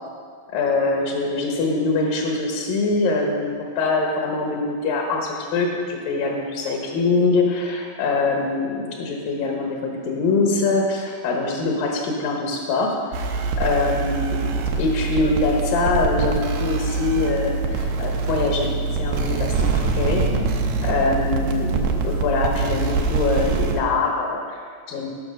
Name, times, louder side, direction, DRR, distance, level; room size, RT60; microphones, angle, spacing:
voice 1, 0.5-12.9 13.6-18.7 19.0-20.2 20.8-25.1, left 3 dB, 70° left, 0 dB, 2.2 m, -23 dB
sound 1, 13.1-23.8, right 4 dB, 80° right, 2.2 m, -24 dB
sound 2, 16.7-21.8, left 2 dB, 50° right, 1.0 m, -34 dB
17.0 x 6.0 x 6.4 m, 2.1 s
omnidirectional pair, 5.5 m